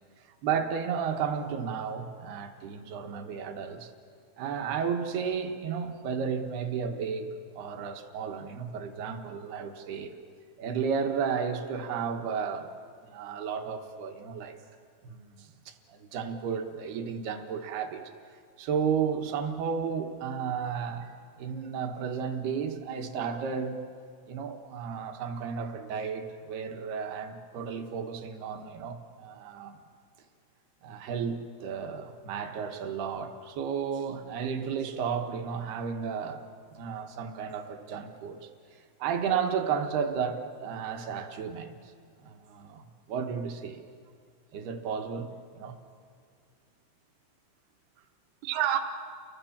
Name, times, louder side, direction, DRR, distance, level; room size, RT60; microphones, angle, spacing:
voice 1, 0.2-3.9 4.4-10.2 10.6-12.7 13.0-14.6 15.0-18.1 18.6-23.8 24.3-29.8 30.8-36.4 36.7-41.8 42.2-43.8 44.5-45.8 48.5-48.8, right 6 dB, 65° right, 6 dB, 2.9 m, -33 dB
29.5 x 22.0 x 7.3 m, 2.2 s
omnidirectional pair, 5.6 m